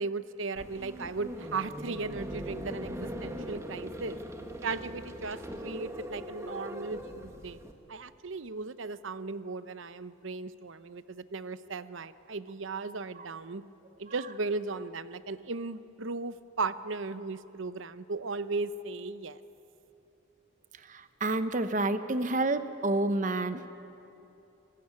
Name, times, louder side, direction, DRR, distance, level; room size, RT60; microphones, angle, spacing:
voice 1, 0.0-4.2 4.6-7.6 7.9-13.6 14.0-19.4, right 3 dB, 65° right, 14 dB, 0.7 m, -36 dB
sound 1, 0.6-7.7, equal, 15° right, 1.4 m, -40 dB
voice 2, 20.9-23.7, right 2 dB, 40° right, 11 dB, 0.9 m, -29 dB
26.5 x 15.5 x 9.6 m, 3.0 s
head